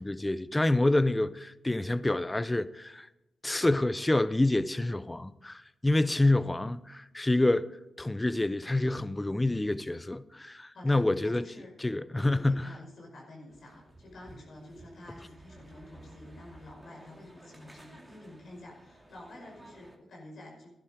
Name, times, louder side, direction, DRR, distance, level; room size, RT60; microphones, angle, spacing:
voice 1, 0.0-3.1 3.4-7.7 8.0-11.4 11.8-12.7, left 2 dB, 15° left, 0.7 m, -27 dB
voice 2, 10.7-11.7 12.1-20.7, left 1 dB, 65° left, 5.5 m, -49 dB
sound 1, 13.5-20.0, right 1 dB, 15° right, 2.2 m, -54 dB
12.5 x 11.0 x 5.1 m
cardioid pair, 65°, 0 cm